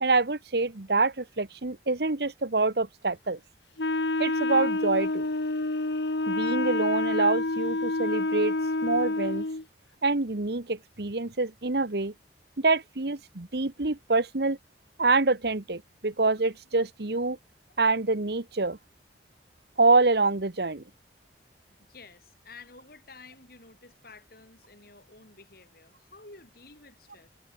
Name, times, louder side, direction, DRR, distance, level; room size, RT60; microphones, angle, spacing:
voice 1, 0.0-3.4 4.2-5.3 6.3-8.6 8.8-9.5 10.0-12.1 12.6-14.6 15.0-17.4 17.8-18.8 19.8-20.8, right 3 dB, 65° right, 1.3 m, -26 dB
Wind instrument woodwind instrument, 3.8-9.6, left 2 dB, 75° left, 1.6 m, -28 dB
voice 2, 21.9-27.3, left 3 dB, 55° left, 6.7 m, -51 dB
head